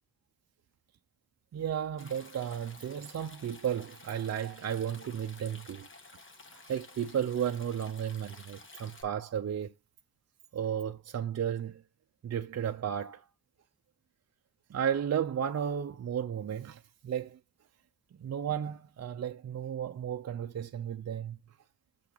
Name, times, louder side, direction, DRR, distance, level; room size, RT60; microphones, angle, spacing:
voice 1, 1.5-5.9 6.5-9.7 10.5-11.8 12.2-13.2 14.7-17.4 18.2-21.4, right 9 dB, 45° right, 0.5 m, -34 dB
Stream, 2.0-9.0, left 3 dB, 35° left, 1.4 m, -52 dB
7.0 x 5.7 x 3.9 m
wide cardioid pair, 140°, 36 cm